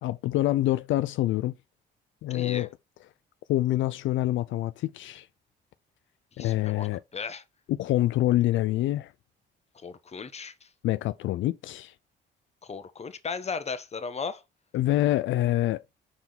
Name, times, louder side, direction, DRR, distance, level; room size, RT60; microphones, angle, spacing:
voice 1, 0.0-1.6 2.2-2.7 3.5-5.3 6.4-7.0 7.7-9.1 10.8-11.9 14.7-15.8, left 15 dB, 75° left, 0.4 m, -26 dB
voice 2, 2.3-2.7 6.4-7.4 9.7-10.7 12.6-14.4, left 5 dB, 35° left, 1.0 m, -36 dB
5.5 x 4.7 x 3.9 m
cardioid pair, 90°, 20 cm